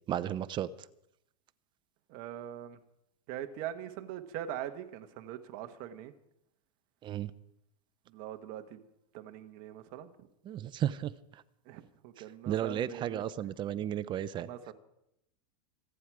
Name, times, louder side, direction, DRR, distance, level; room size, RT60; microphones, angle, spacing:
voice 1, 0.1-0.7 7.0-7.3 10.5-11.4 12.5-14.5, right 11 dB, 25° right, 0.5 m, -34 dB
voice 2, 2.1-2.8 3.3-6.1 8.1-8.8 9.1-10.3 11.6-13.2 14.4-14.7, right 11 dB, 45° right, 1.4 m, -42 dB
26.5 x 9.1 x 4.8 m
supercardioid pair, 150°, 20 cm